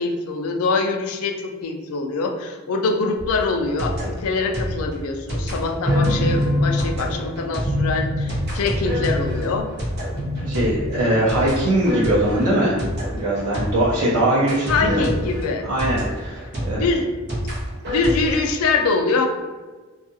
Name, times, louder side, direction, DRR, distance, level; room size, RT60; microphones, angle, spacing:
voice 1, 0.0-9.7 14.7-15.7 16.6-17.1 17.9-19.3, left 3 dB, 75° left, 4 dB, 0.4 m, -24 dB
sound 1, 3.2-14.0 14.5-18.4, equal, 50° right, 0.8 m, -28 dB
sound 2, 5.9-6.9 7.7-8.5 8.9-9.6 10.2-10.8, left 1 dB, 5° left, 1.2 m, -23 dB
sound 3, 6.0-10.9, equal, 20° right, 1.0 m, -36 dB
voice 2, 10.4-12.8 13.1-15.0 15.6-16.9, right 1 dB, 85° right, -7 dB, 0.6 m, -21 dB
2.6 x 2.3 x 2.6 m, 1.3 s
head